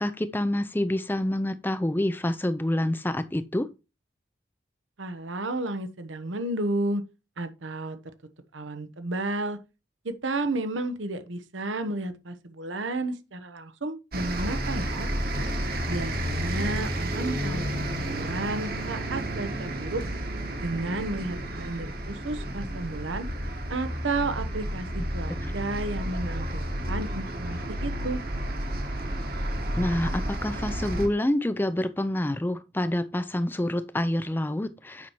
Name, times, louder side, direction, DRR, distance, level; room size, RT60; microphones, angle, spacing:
voice 1, 0.0-3.7 25.4-25.5 29.8-35.1, left 1 dB, 10° left, 0.4 m, -27 dB
voice 2, 5.0-7.0 7.4-8.0 8.5-9.6 10.0-15.1 15.9-20.0 20.6-23.3 23.7-28.2, right 2 dB, 90° right, 1.0 m, -32 dB
sound 1, 14.1-31.1, right 1 dB, 50° right, 1.4 m, -31 dB
8.5 x 5.6 x 3.0 m
head